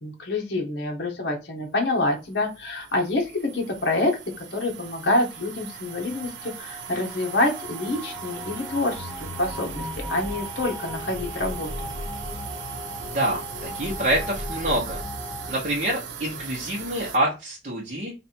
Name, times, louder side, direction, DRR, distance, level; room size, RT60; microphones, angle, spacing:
voice 1, 0.0-4.2 4.5-9.1 9.4-11.9, left 2 dB, 75° left, 2 dB, 1.0 m, -27 dB
sound 1, 2.0-17.2, right 6 dB, 85° right, 0.7 m, -39 dB
sound 2, 4.3-15.5, left 1 dB, ahead, 1.0 m, -37 dB
voice 2, 13.0-15.0 15.5-18.1, right 1 dB, 45° right, -3 dB, 0.9 m, -26 dB
3.3 x 2.5 x 4.3 m, 0.27 s
head